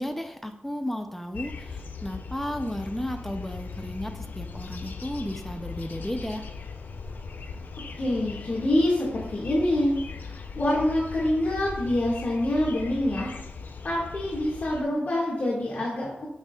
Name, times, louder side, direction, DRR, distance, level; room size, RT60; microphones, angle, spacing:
voice 1, 0.0-6.5, equal, 5° left, 6 dB, 0.7 m, -33 dB
sound 1, 1.3-14.8, left 5 dB, 80° left, 0.7 m, -39 dB
voice 2, 8.0-13.3 13.8-16.3, left 1 dB, 60° left, -6 dB, 2.0 m, -26 dB
8.6 x 6.6 x 2.4 m, 0.84 s
wide cardioid pair, 100°, 3 cm